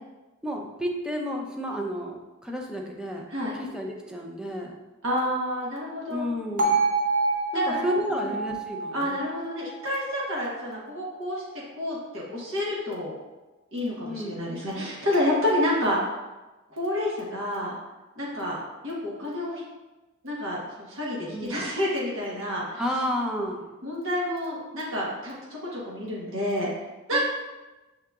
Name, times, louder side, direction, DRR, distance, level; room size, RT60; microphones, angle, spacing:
voice 1, 0.4-3.3 3.6-4.8 6.1-6.9 7.5-9.2 14.0-14.4 21.3-21.6 22.8-23.7 27.1-27.2, equal, 5° right, 0 dB, 0.5 m, -31 dB
voice 2, 5.0-6.2 7.6-7.8 8.1-8.3 8.9-11.4 11.8-13.1 13.7-16.0 16.7-17.7 18.2-19.6 20.2-22.8 23.8-26.7 27.1-27.2, left 1 dB, 70° right, -5 dB, 1.1 m, -29 dB
Bell, 6.6-10.7, right 3 dB, 40° right, 0.7 m, -27 dB
5.9 x 3.7 x 2.3 m, 1.1 s
head